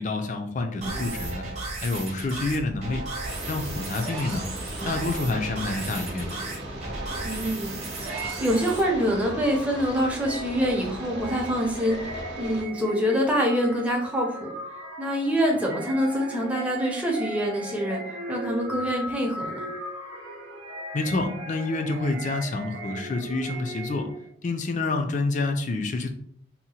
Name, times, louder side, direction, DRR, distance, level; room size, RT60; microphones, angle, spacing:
voice 1, 0.0-1.4 1.8-3.0 3.5-4.4 4.9-6.4 20.9-24.1 24.4-26.1, left 3 dB, 40° left, 6 dB, 0.4 m, -28 dB
sound 1, 0.8-8.8, right 2 dB, 35° right, 0.9 m, -35 dB
sound 2, 3.2-12.6, right 1 dB, 55° right, 0.6 m, -38 dB
voice 2, 7.2-14.5 15.0-18.0 18.3-19.6, equal, 5° right, -1 dB, 0.6 m, -26 dB
sound 3, 8.1-24.3, right 1 dB, 90° right, 0.7 m, -38 dB
2.8 x 2.1 x 4.1 m, 0.64 s
head